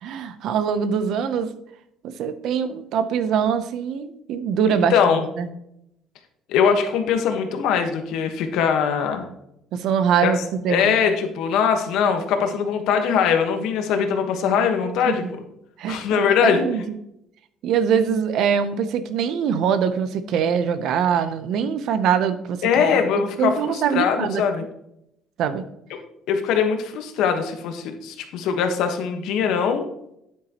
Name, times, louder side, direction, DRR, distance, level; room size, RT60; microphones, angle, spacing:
voice 1, 0.0-1.5 2.0-5.5 9.7-10.4 10.6-11.0 15.1-15.3 15.8-16.8 17.6-23.0 23.4-24.4 25.4-25.6, right 7 dB, 60° right, 11 dB, 0.7 m, -23 dB
voice 2, 4.9-5.2 6.5-9.2 10.2-10.3 10.7-15.2 15.9-16.6 22.6-24.6 26.3-29.9, left 7 dB, 70° left, 5 dB, 1.3 m, -21 dB
9.6 x 8.2 x 3.0 m, 0.79 s
cardioid pair, 150°, 0 cm